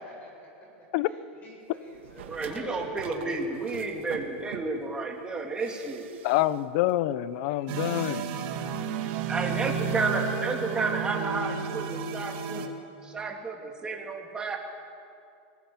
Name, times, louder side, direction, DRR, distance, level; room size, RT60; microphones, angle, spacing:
voice 1, 0.0-0.7 1.0-3.1 3.4-3.6 10.4-10.8, equal, 20° left, -2 dB, 7.7 m, -45 dB
sound 1, 1.9-4.9 5.6-6.6 6.9-7.0, right 9 dB, 80° right, 2.0 m, -46 dB
voice 2, 2.3-6.1 9.0-12.7 13.0-14.6, right 3 dB, 15° right, 1 dB, 3.3 m, -31 dB
voice 3, 6.2-8.3, left 15 dB, 55° left, 16 dB, 0.9 m, -26 dB
sound 2, 7.7-12.7, right 6 dB, 50° right, 2.6 m, -32 dB
25.5 x 20.5 x 7.5 m, 2.5 s
supercardioid pair, 140°, 6 cm